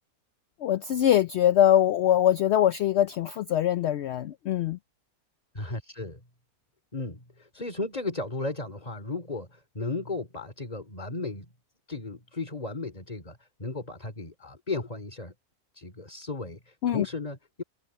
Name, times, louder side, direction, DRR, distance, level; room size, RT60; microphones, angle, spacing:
voice 1, 0.6-4.8 16.8-17.1, left 11 dB, 65° left, 0.7 m, -23 dB
voice 2, 5.5-6.2 6.9-11.5 11.9-15.3 15.7-17.6, left 3 dB, 25° left, 3.0 m, -35 dB
open air
omnidirectional pair, 1.6 m